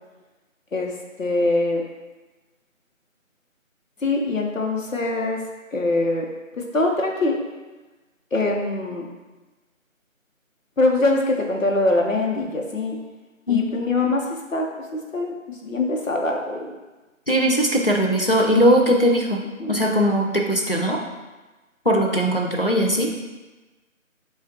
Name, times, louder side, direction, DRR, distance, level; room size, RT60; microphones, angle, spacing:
voice 1, 0.7-1.8 4.0-5.4 5.7-6.3 6.6-7.4 8.3-9.1 10.8-13.0 13.5-16.7 19.6-19.9, left 2 dB, 70° left, 1 dB, 1.0 m, -23 dB
voice 2, 17.3-19.4 19.7-21.0 21.9-23.1, equal, 45° left, 0 dB, 0.4 m, -19 dB
7.0 x 2.4 x 2.8 m, 1.2 s
figure-of-eight pair, 165°, 41 cm